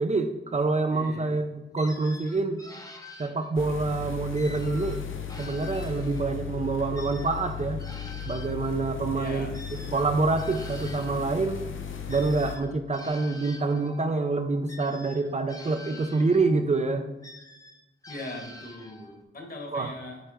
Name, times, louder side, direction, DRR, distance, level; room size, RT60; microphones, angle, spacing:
voice 1, 0.0-2.6 3.2-5.0 5.4-7.8 8.3-9.5 9.9-11.6 12.1-17.1 19.7-19.9, right 3 dB, 35° right, 7 dB, 0.5 m, -26 dB
voice 2, 0.9-1.3 9.1-9.5 18.1-20.2, left 2 dB, 50° left, 2 dB, 1.5 m, -40 dB
sound 1, 1.8-3.8 4.3-6.4 6.9-11.3 12.1-14.1 14.7-16.7 17.2-19.2, left 2 dB, 15° left, 0.7 m, -47 dB
sound 2, 3.5-12.6, left 8 dB, 80° left, 0.7 m, -36 dB
9.0 x 3.3 x 5.1 m, 1.0 s
wide cardioid pair, 105°, 20 cm